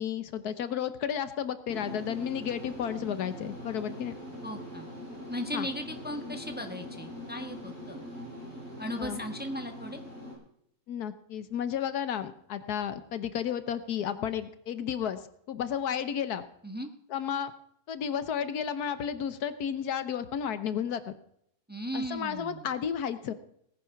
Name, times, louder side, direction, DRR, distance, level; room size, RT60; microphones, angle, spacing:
voice 1, 0.0-4.1 5.5-5.7 9.0-9.2 10.9-15.2 15.5-16.4 17.1-17.5 17.9-21.1 21.9-23.3, left 8 dB, 75° left, 12 dB, 1.5 m, -32 dB
sound 1, 1.7-10.3, equal, 50° right, 7.3 m, -42 dB
voice 2, 4.4-4.9 5.3-8.0 8.8-10.0 16.6-16.9 21.7-22.7, equal, 5° right, 5 dB, 1.2 m, -37 dB
18.5 x 9.7 x 5.8 m, 0.72 s
omnidirectional pair, 1.7 m